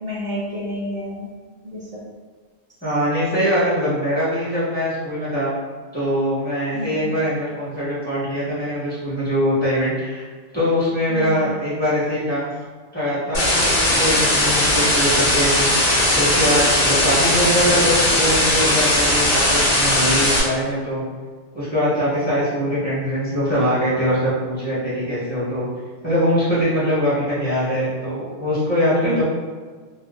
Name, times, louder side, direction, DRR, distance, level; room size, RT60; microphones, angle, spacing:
voice 1, 0.0-1.3 1.6-1.8 6.7-7.1 11.1-11.4 24.8-24.9 29.1-29.2, left 1 dB, 70° right, -7 dB, 0.3 m, -29 dB
voice 2, 2.8-5.5 5.9-10.2 10.5-12.5 12.9-21.0 21.5-25.7 26.0-29.2, equal, 10° left, -12 dB, 1.3 m, -22 dB
sound 1, 13.3-20.4, left 1 dB, 45° left, 1.1 m, -18 dB
2.9 x 2.7 x 2.5 m, 1.5 s
omnidirectional pair, 1.3 m